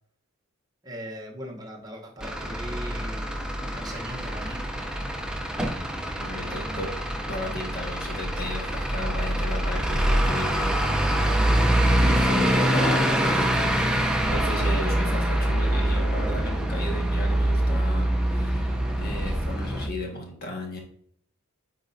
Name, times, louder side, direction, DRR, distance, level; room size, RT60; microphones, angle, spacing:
voice 1, 0.8-3.4 3.7-4.7 6.4-6.9, equal, 20° right, 0 dB, 0.9 m, -40 dB
Truck / Idling, 2.2-19.9, right 1 dB, 5° right, 0.5 m, -25 dB
voice 2, 6.2-6.9 7.3-11.4 12.0-13.7 14.3-20.8, left 1 dB, 50° left, 1 dB, 1.5 m, -35 dB
9.1 x 4.1 x 2.6 m, 0.64 s
head